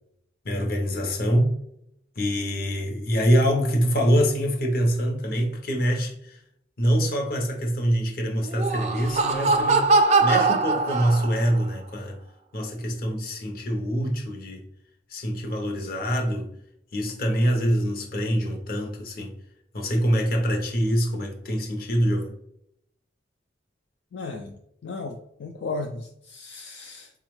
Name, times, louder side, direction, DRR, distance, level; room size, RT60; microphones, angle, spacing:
voice 1, 0.4-1.5 2.2-6.4 6.8-12.2 12.5-14.6 15.1-16.5 16.9-19.4 19.7-22.3, equal, 50° left, 0.8 m, -25 dB
Laughter, 8.4-11.6, right 3 dB, 35° right, 0.3 m, -22 dB
voice 2, 24.1-24.6 24.8-27.1, left 3 dB, 70° left, 0.4 m, -35 dB
4.3 x 2.4 x 3.1 m
head